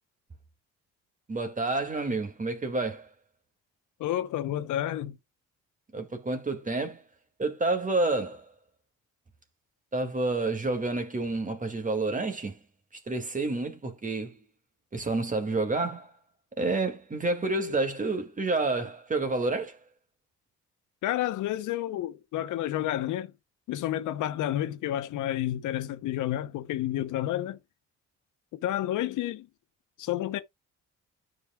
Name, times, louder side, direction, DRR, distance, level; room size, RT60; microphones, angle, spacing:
voice 1, 1.3-3.1 5.9-7.0 7.4-8.5 9.9-12.6 13.1-14.4 14.9-16.1 16.6-19.8, right 3 dB, 25° right, 2.0 m, -29 dB
voice 2, 4.0-5.2 21.0-23.3 23.7-27.6 28.5-29.5 30.0-30.4, left 13 dB, 85° left, 0.8 m, -30 dB
13.0 x 5.1 x 2.2 m
cardioid pair, 90°, 30 cm